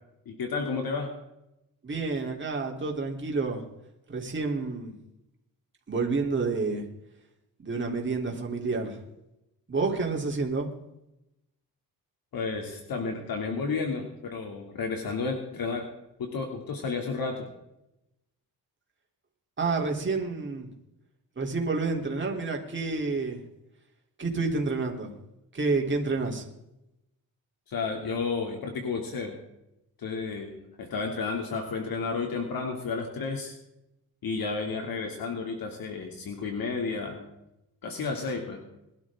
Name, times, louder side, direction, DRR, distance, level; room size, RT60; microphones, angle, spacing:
voice 1, 0.3-1.1 12.3-15.9 16.2-17.5 27.7-29.4 30.0-33.6 34.2-37.2 37.8-38.6, left 4 dB, 65° left, 2 dB, 2.8 m, -32 dB
voice 2, 1.8-3.6 4.1-4.9 5.9-6.8 7.6-9.0 9.7-10.7 19.6-20.7 21.4-23.4 24.2-25.1 25.5-26.5, right 3 dB, 30° right, 1 dB, 3.4 m, -29 dB
22.0 x 12.0 x 3.7 m, 0.88 s
cardioid pair, 115°, 37 cm